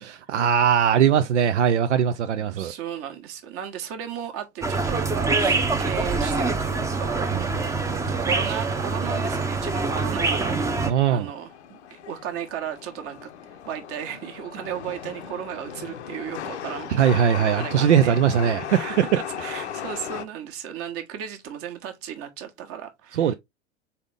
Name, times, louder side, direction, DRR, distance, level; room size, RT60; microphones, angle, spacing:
voice 1, 0.0-2.7 7.3-8.1 10.9-11.3 16.9-18.8 23.1-23.3, right 8 dB, 80° right, 0.5 m, -21 dB
voice 2, 2.3-7.4 8.2-10.5 10.8-13.3 13.6-18.2 18.7-23.3, right 9 dB, 40° right, 1.3 m, -35 dB
sound 1, 4.6-10.9, right 3 dB, 10° right, 0.7 m, -25 dB
Chatter / Subway metro underground, 6.0-20.2, left 9 dB, 70° left, 0.7 m, -38 dB
4.1 x 3.5 x 3.4 m
figure-of-eight pair, 85°, 35 cm